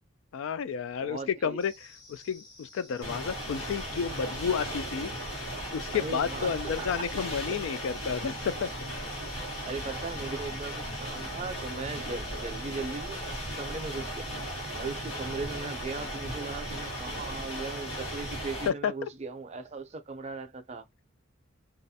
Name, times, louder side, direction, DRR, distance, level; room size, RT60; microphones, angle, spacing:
voice 1, 0.3-1.7 2.1-5.1 5.7-8.9 18.7-19.1, left 7 dB, 70° left, 0.3 m, -31 dB
voice 2, 1.0-1.6 5.9-7.1 7.5-7.6 9.6-13.2 13.6-14.3 14.7-20.9, right 4 dB, 35° right, 0.5 m, -38 dB
sound 1, 1.6-18.4, left 2 dB, 45° left, 1.2 m, -53 dB
sound 2, 3.0-18.7, equal, 90° left, 1.2 m, -36 dB
2.4 x 2.0 x 2.7 m
head